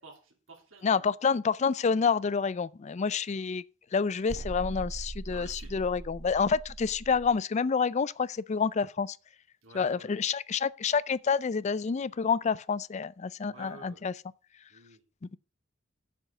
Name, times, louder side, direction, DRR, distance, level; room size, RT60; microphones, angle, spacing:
voice 1, 0.0-1.1 5.2-5.8 9.6-10.2 13.5-14.0 14.7-15.0, right 3 dB, 85° right, 2.9 m, -51 dB
voice 2, 0.8-3.6 3.9-9.2 9.7-14.1, left 5 dB, 35° left, 0.4 m, -28 dB
sound 1, 4.3-7.4, right 2 dB, 40° right, 0.5 m, -40 dB
7.4 x 7.0 x 6.6 m
head